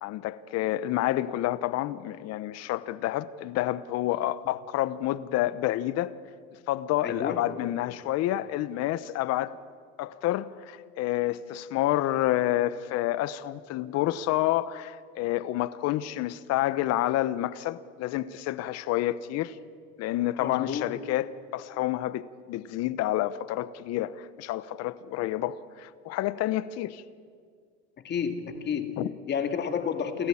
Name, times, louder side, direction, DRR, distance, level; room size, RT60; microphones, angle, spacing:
voice 1, 0.0-6.1 6.7-9.5 10.0-19.5 20.0-21.3 21.5-27.0 29.0-29.1, left 14 dB, 55° left, 1.0 m, -29 dB
voice 2, 7.0-7.5 8.3-8.4 20.4-20.9 28.0-30.3, left 7 dB, 35° left, 2.2 m, -31 dB
28.5 x 14.0 x 8.6 m
supercardioid pair, 120°, 31 cm